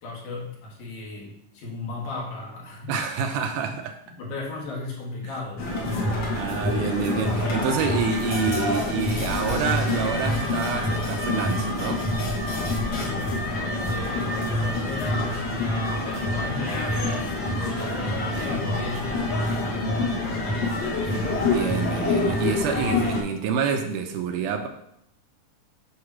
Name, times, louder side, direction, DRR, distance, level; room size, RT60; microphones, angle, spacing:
voice 1, 0.0-2.9 3.5-3.7 4.2-6.2 12.9-20.6, left 3 dB, 75° left, -3 dB, 3.0 m, -36 dB
voice 2, 2.9-4.0 5.9-6.1 6.3-12.0 20.0-20.2 21.4-24.7, right 6 dB, 85° right, 4 dB, 2.1 m, -28 dB
sound 1, 5.6-23.2, left 2 dB, 50° left, 1.4 m, -26 dB
8.0 x 2.9 x 6.0 m, 0.76 s
omnidirectional pair, 3.6 m